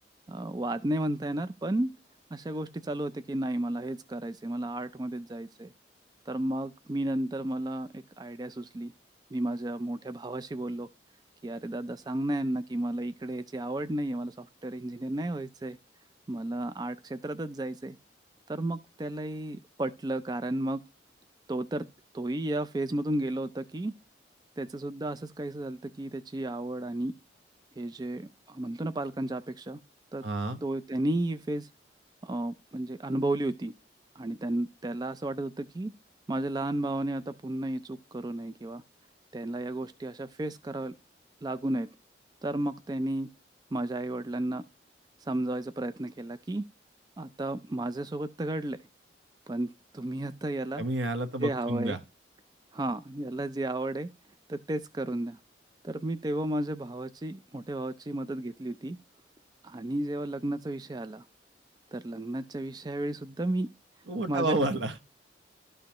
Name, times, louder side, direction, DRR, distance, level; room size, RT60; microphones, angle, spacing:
voice 1, 0.3-1.9 2.3-5.7 6.3-8.9 9.3-10.9 11.4-15.8 16.3-18.0 18.5-20.8 21.5-21.8 22.1-23.9 24.6-27.1 27.8-29.8 30.1-30.2 30.6-31.7 32.2-33.7 34.2-35.9 36.3-38.8 39.3-40.9 41.4-41.9 42.4-43.3 43.7-44.6 45.2-46.6 47.2-48.8 49.5-50.8 51.4-52.0 52.7-54.1 54.5-55.4 55.8-59.0 59.6-61.2 61.9-63.7 64.3-64.5, right 1 dB, 20° right, 0.3 m, -33 dB
voice 2, 30.2-30.6 50.8-52.0 64.1-65.0, right 2 dB, 85° right, 1.0 m, -30 dB
12.5 x 5.2 x 2.9 m
head